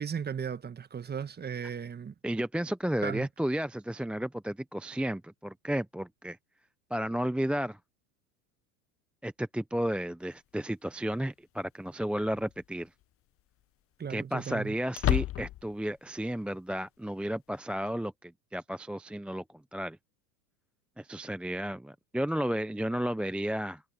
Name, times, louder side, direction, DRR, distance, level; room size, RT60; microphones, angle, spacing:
voice 1, 0.0-2.1 3.0-3.3 14.0-14.7, right 7 dB, 20° right, 1.4 m, -36 dB
voice 2, 2.2-6.4 6.9-7.8 9.2-12.9 14.1-19.4 19.7-20.0 21.0-23.8, right 1 dB, ahead, 0.7 m, -32 dB
sound 1, 10.3-10.4 12.2-12.7 13.0-13.1 14.9-15.8, left 14 dB, 30° left, 0.7 m, -30 dB
hypercardioid pair, 95°, 48 cm